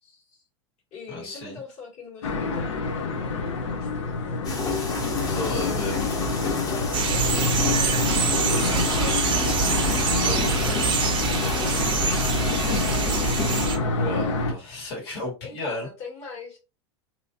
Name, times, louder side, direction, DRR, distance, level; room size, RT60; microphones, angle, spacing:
voice 1, 0.0-0.4 0.9-4.4 5.3-12.4 15.4-16.6, left 4 dB, 50° left, 1.7 m, -43 dB
voice 2, 1.1-1.6 5.3-6.0 9.8-9.9 10.2-10.9 13.9-15.9, left 2 dB, 65° left, 1.8 m, -33 dB
sound 1, 2.2-14.5, left 3 dB, 85° left, 0.8 m, -27 dB
sound 2, 4.4-13.7, left 3 dB, 25° left, 1.0 m, -30 dB
sound 3, 6.9-13.8, right 6 dB, 35° right, 0.7 m, -26 dB
2.9 x 2.7 x 2.6 m
hypercardioid pair, 105°, 15 cm